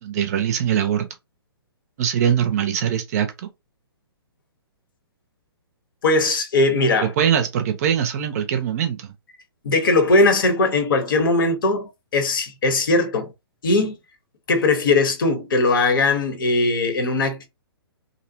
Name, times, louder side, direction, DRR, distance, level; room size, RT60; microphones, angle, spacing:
voice 1, 0.0-1.1 2.0-3.5 7.0-9.1, right 9 dB, 40° right, 0.5 m, -22 dB
voice 2, 6.0-7.1 9.6-13.3 13.6-13.9 14.5-17.5, left 2 dB, 55° left, 0.8 m, -19 dB
2.6 x 2.0 x 2.6 m
figure-of-eight pair, 125°, 13 cm